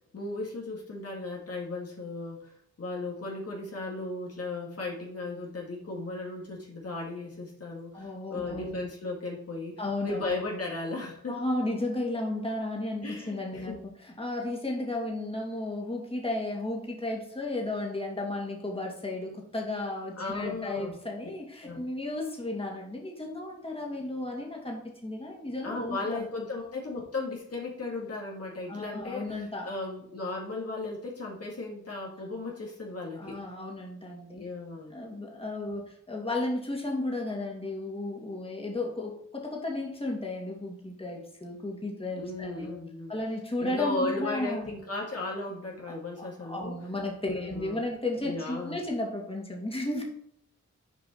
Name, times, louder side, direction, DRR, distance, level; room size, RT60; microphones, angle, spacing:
voice 1, 0.1-11.4 13.0-13.8 20.2-20.9 21.6-21.8 25.6-33.4 34.3-35.0 42.2-43.1 43.6-46.8 47.3-47.8 48.2-48.8, left 2 dB, 55° left, -2 dB, 2.0 m, -36 dB
voice 2, 7.9-8.8 9.8-10.3 11.3-26.2 28.7-29.7 33.2-34.5 34.9-42.8 43.1-44.7 45.9-50.0, left 2 dB, 20° left, -1 dB, 2.3 m, -34 dB
7.1 x 4.8 x 4.3 m, 0.69 s
cardioid pair, 55°, 29 cm